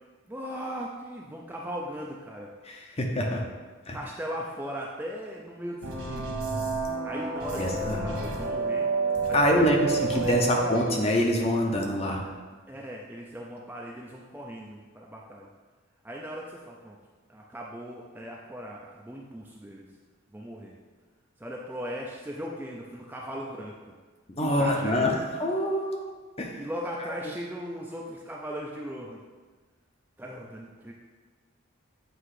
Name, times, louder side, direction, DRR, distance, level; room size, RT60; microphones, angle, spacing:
voice 1, 0.3-2.5 3.9-6.3 7.0-8.9 9.4-9.7 10.1-10.4 12.7-15.5 16.0-17.0 17.3-19.9 20.3-20.8 21.4-23.9 24.4-25.2 26.6-29.2 30.2-30.9, equal, 10° right, -3 dB, 0.4 m, -38 dB
voice 2, 2.6-3.4 3.9-4.0 7.5-8.0 9.3-12.2 24.3-26.0 26.4-26.6 27.0-27.1, left 1 dB, 30° left, 1 dB, 0.7 m, -25 dB
sound 1, 5.8-10.8, right 3 dB, 70° right, 1.3 m, -29 dB
7.8 x 2.9 x 4.8 m, 1.4 s
head